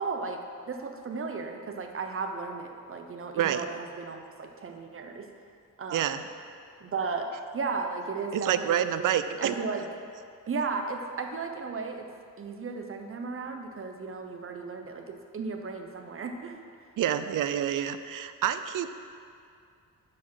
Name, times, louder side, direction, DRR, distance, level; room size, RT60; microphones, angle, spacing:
voice 1, 0.0-5.3 5.8-6.0 6.8-7.3 7.5-9.1 9.4-9.8 10.5-12.1 12.4-16.6, right 4 dB, 40° right, 5 dB, 0.8 m, -35 dB
voice 2, 5.9-6.2 8.3-9.6 17.0-18.9, right 10 dB, 70° right, 11 dB, 0.5 m, -28 dB
7.4 x 5.1 x 6.0 m, 2.3 s
wide cardioid pair, 115°, 33 cm